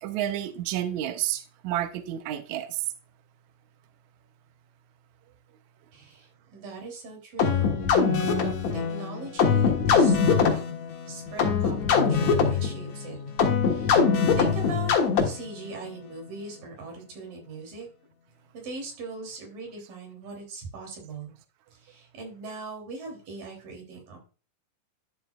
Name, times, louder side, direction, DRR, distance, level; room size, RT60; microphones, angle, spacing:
voice 1, 0.0-2.8, right 12 dB, 70° right, 2.0 m, -30 dB
voice 2, 5.9-10.6 11.1-13.2 13.6-14.9 15.2-17.9 18.5-21.3 21.7-24.2, right 3 dB, 90° right, 4.9 m, -40 dB
sound 1, 7.4-15.6, left 5 dB, 60° left, 2.5 m, -23 dB
12.0 x 7.8 x 2.4 m
omnidirectional pair, 3.8 m